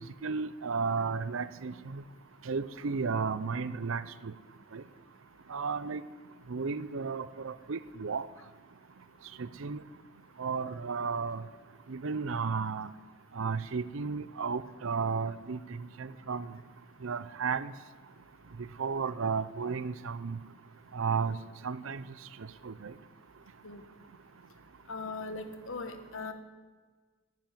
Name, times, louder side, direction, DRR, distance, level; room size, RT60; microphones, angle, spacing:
voice 1, 0.2-2.0 2.5-4.3 4.7-4.8 5.5-6.0 6.5-8.2 9.4-9.8 10.4-11.5 11.9-12.9 13.4-15.6 16.0-16.5 17.0-17.7 18.8-20.4 20.9-21.4 21.6-22.0 22.6-22.9, right 5 dB, 65° right, 15 dB, 0.6 m, -33 dB
voice 2, 24.9-26.3, left 3 dB, 65° left, 8 dB, 1.3 m, -39 dB
10.5 x 9.6 x 9.2 m, 1.4 s
head